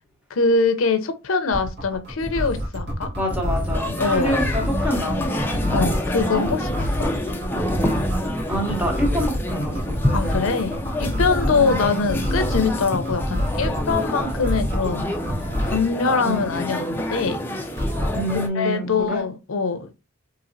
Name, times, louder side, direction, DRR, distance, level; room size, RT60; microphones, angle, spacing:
voice 1, 0.3-3.1 4.0-4.4 5.7-6.9 10.1-15.1 15.6-17.4 18.5-19.9, left 4 dB, 70° left, 0.5 m, -23 dB
sound 1, 1.5-15.9 17.7-18.3, equal, 55° right, 1.2 m, -26 dB
voice 2, 3.2-5.5 8.5-10.0 11.5-11.8 16.2-16.5 18.1-19.2, equal, 5° right, 0.9 m, -27 dB
sound 2, 3.7-18.5, left 1 dB, 10° left, 0.4 m, -28 dB
4.1 x 2.7 x 2.6 m
head